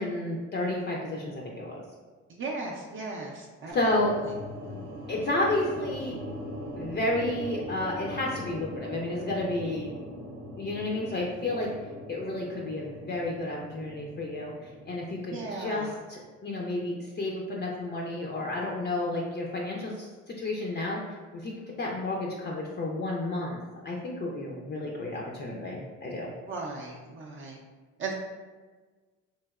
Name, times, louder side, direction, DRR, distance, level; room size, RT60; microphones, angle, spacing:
voice 1, 0.0-1.8 3.7-4.1 5.1-6.2 6.8-10.0 10.6-11.7 12.1-26.3, left 2 dB, 35° left, -2 dB, 0.4 m, -31 dB
voice 2, 2.3-4.1 4.6-4.7 15.3-15.9 26.5-27.6 28.0-28.1, right 3 dB, 45° right, -2 dB, 0.4 m, -37 dB
sound 1, 3.7-16.0, equal, 80° right, 0.7 m, -41 dB
3.0 x 2.7 x 2.3 m, 1.4 s
cardioid pair, 90°, 30 cm